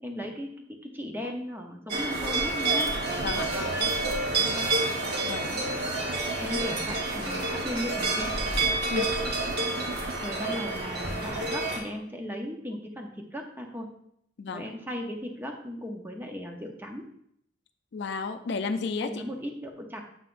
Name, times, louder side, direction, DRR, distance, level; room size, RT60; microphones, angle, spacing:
voice 1, 0.0-2.9 3.3-3.9 4.4-4.7 5.4-5.7 6.4-8.4 10.1-13.9 14.5-17.1 19.0-20.0, equal, 10° right, 2 dB, 0.7 m, -37 dB
sound 1, 1.9-11.8, right 2 dB, 60° right, 1.2 m, -29 dB
sound 2, 2.6-10.1, right 3 dB, 40° right, 0.3 m, -40 dB
voice 2, 17.9-19.1, left 4 dB, 65° left, 8 dB, 0.4 m, -32 dB
7.8 x 5.6 x 2.5 m, 0.71 s
head